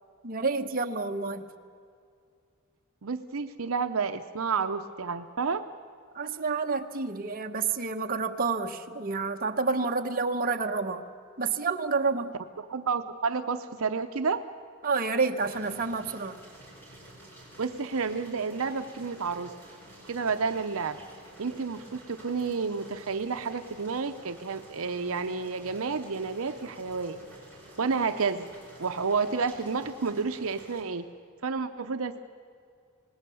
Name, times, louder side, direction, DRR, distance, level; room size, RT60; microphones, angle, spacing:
voice 1, 0.2-1.5 6.1-11.1 11.4-12.3 14.8-16.4, right 4 dB, 40° right, 4 dB, 1.1 m, -29 dB
voice 2, 3.0-5.6 12.6-14.4 17.6-19.5 20.1-21.0 21.4-27.2 27.8-28.5 28.8-31.0 31.4-32.2, right 5 dB, 70° right, 7 dB, 0.7 m, -30 dB
sound 1, 15.4-30.8, right 1 dB, 10° left, 5.0 m, -51 dB
26.0 x 20.0 x 7.0 m, 2.3 s
head